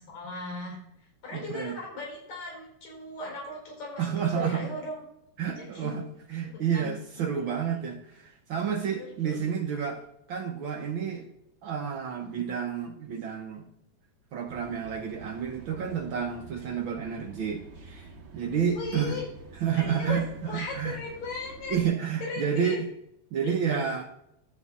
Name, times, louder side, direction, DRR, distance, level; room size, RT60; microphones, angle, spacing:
voice 1, 0.1-0.8 1.2-4.1 4.3-5.0 5.6-6.0 6.4-6.9 9.2-9.4 12.2-12.5 18.8-19.2 19.7-21.8 22.2-22.8 23.4-23.9, left 3 dB, 70° left, -2 dB, 5.8 m, -37 dB
voice 2, 1.3-1.8 4.0-4.7 5.4-11.3 11.6-13.6 14.3-19.2 19.6-20.2 20.5-21.0 21.7-22.9 23.3-24.0, right 7 dB, 70° right, 3 dB, 1.2 m, -30 dB
sound 1, 14.5-21.8, right 4 dB, 50° right, 1.7 m, -48 dB
11.5 x 7.3 x 4.1 m, 0.78 s
omnidirectional pair, 3.4 m